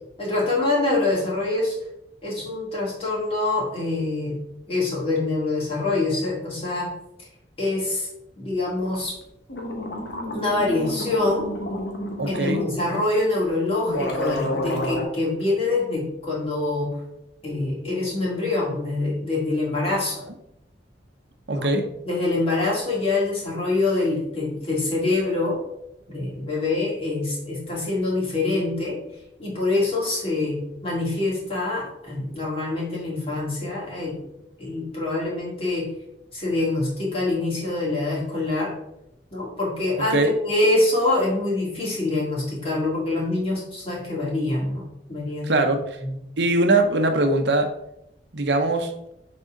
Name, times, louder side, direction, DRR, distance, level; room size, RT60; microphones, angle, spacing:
voice 1, 0.2-1.8 2.2-4.4 4.7-6.9 7.6-8.1 8.4-9.1 10.3-11.5 12.3-16.9 17.4-20.2 21.5-21.7 22.0-25.6 26.1-29.0 29.4-34.2 34.6-35.9 36.3-38.7 39.3-40.2 40.4-44.8 45.1-45.5 46.0-46.1, left 2 dB, 35° left, -5 dB, 2.4 m, -25 dB
sound 1, 9.2-9.3 9.5-12.7 13.4-13.5 13.9-15.0, left 1 dB, 75° left, 1.3 m, -29 dB
voice 2, 12.2-12.6 21.5-21.8 40.1-40.3 45.5-45.8 46.4-47.7 48.3-48.9, right 2 dB, 70° right, 5 dB, 0.8 m, -21 dB
6.5 x 4.2 x 3.8 m, 0.81 s
head